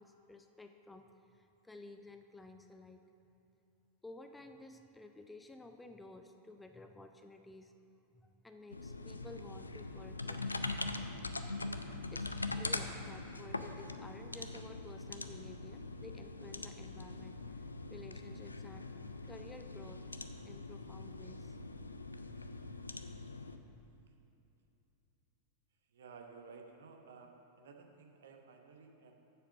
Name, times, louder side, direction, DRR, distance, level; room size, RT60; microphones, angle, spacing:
voice 1, 0.0-3.0 4.0-7.7 8.1-10.8 12.1-18.9 19.2-20.1 20.4-21.6, left 2 dB, 10° left, 6 dB, 0.4 m, -53 dB
sound 1, 8.7-23.6, left 3 dB, 80° left, 0.4 m, -42 dB
voice 2, 25.9-29.1, right 5 dB, 60° right, 3 dB, 0.9 m, -55 dB
7.4 x 6.8 x 6.3 m, 2.8 s
figure-of-eight pair, 90°, 0 cm